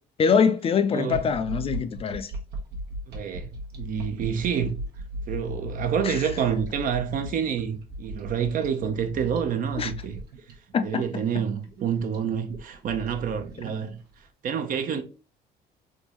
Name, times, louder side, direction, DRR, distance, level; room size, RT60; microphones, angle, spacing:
voice 1, 0.2-2.3 6.0-6.2 9.8-9.9 10.7-11.0, left 6 dB, 35° left, 0.3 m, -23 dB
sound 1, 1.1-14.2, equal, 75° right, 1.0 m, -37 dB
voice 2, 3.1-3.5 3.8-4.7 5.3-10.2 10.8-14.0 14.4-15.0, right 8 dB, 55° right, 0.6 m, -28 dB
3.6 x 2.6 x 3.0 m
cardioid pair, 110°, 17 cm